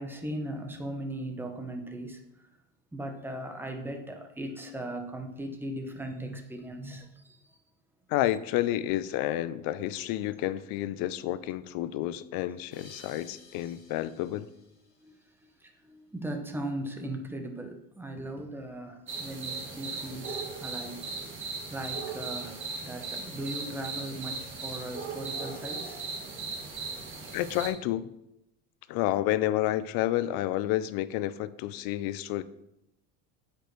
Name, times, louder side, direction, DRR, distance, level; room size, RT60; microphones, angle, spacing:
voice 1, 0.0-2.2 2.9-7.4 15.0-15.1 15.4-21.0 21.7-26.0, right 1 dB, 5° right, 4 dB, 0.8 m, -38 dB
voice 2, 8.1-14.5 27.3-28.1 28.9-32.4, left 14 dB, 60° left, 15 dB, 0.5 m, -30 dB
sound 1, 12.7-15.8, left 3 dB, 35° left, 2.8 m, -55 dB
sound 2, 19.1-27.7, right 4 dB, 30° right, 1.4 m, -37 dB
8.8 x 5.2 x 3.1 m, 0.87 s
cardioid pair, 130°, 40 cm